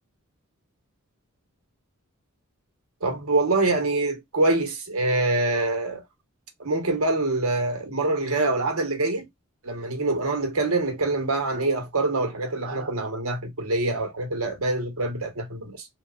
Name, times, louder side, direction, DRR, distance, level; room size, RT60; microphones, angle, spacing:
voice 1, 3.0-6.0 6.6-9.3 9.6-15.9, right 2 dB, 75° right, 1.0 m, -25 dB
3.0 x 2.3 x 2.3 m
head